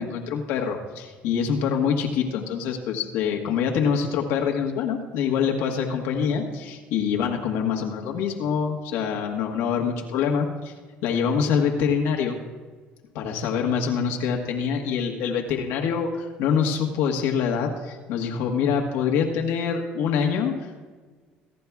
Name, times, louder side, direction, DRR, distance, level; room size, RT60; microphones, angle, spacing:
voice 1, 0.0-10.7 11.0-12.4 13.1-20.8, left 7 dB, 80° left, 1 dB, 1.4 m, -25 dB
21.0 x 11.0 x 2.4 m, 1.4 s
supercardioid pair, 90°, 4 cm